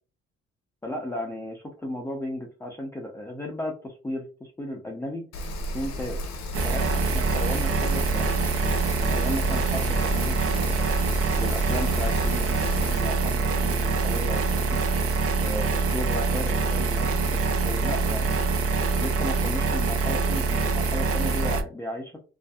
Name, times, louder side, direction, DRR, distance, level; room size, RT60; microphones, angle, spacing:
voice 1, 0.8-5.2 5.7-6.2 6.6-8.3 9.0-10.8 11.4-14.8 15.4-18.4 19.0-22.2, left 1 dB, 10° left, -1 dB, 0.5 m, -35 dB
Rain, 5.3-13.0, left 1 dB, 60° left, 0.8 m, -33 dB
sound 1, 6.5-21.6, right 4 dB, 50° right, 0.6 m, -25 dB
2.5 x 2.4 x 2.2 m, 0.36 s
cardioid pair, 90°, 30 cm